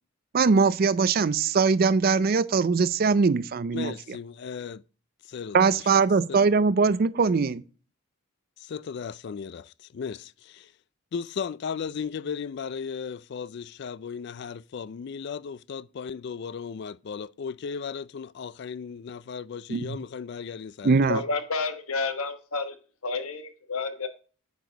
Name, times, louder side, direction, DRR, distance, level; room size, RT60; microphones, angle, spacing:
voice 1, 0.3-4.2 5.5-7.6 19.7-20.0 20.8-21.2, right 4 dB, 45° right, 0.4 m, -22 dB
voice 2, 3.7-4.8 5.3-5.8 6.3-6.4 8.6-10.7 11.1-21.0, left 6 dB, 50° left, 0.3 m, -36 dB
voice 3, 21.1-22.8 23.0-24.1, left 4 dB, 80° left, 1.3 m, -30 dB
9.3 x 4.8 x 3.9 m
head